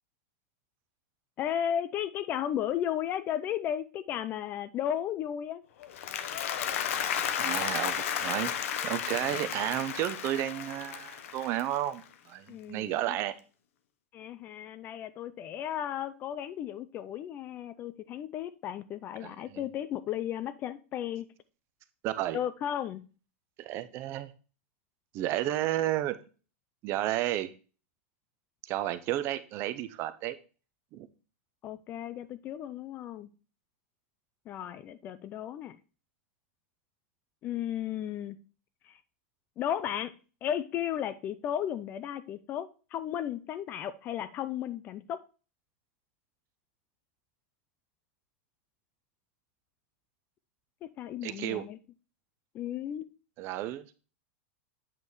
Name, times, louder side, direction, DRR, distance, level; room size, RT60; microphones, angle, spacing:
voice 1, 1.4-5.6 12.5-13.2 14.1-21.3 22.3-23.0 31.6-33.3 34.5-35.8 37.4-38.4 38.8-39.0 39.6-40.1 40.4-45.2 50.8-51.8 52.5-53.1, left 10 dB, 25° left, 0.4 m, -34 dB
Applause, 5.8-12.1, left 9 dB, 70° left, 0.9 m, -33 dB
voice 2, 7.4-8.5 8.8-13.4 19.2-19.6 22.0-22.4 23.6-24.3 25.1-26.2 26.8-27.5 28.6-30.4 30.9-31.1 51.2-51.6 53.4-53.9, right 13 dB, 35° right, 0.5 m, -32 dB
8.3 x 5.4 x 3.1 m
supercardioid pair, 160°, 7 cm